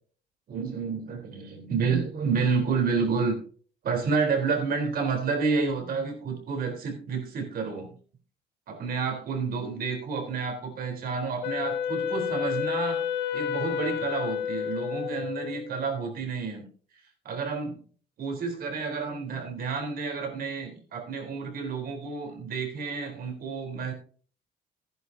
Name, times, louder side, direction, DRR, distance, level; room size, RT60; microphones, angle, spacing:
voice 1, 0.5-3.4 3.8-7.9 8.7-13.0 13.3-16.6 17.2-17.8 18.2-23.9, right 5 dB, 60° right, 3 dB, 3.9 m, -30 dB
Wind instrument woodwind instrument, 11.4-15.7, left 8 dB, 75° left, 1.1 m, -30 dB
14.5 x 11.0 x 2.8 m, 0.42 s
cardioid pair, 140°, 18 cm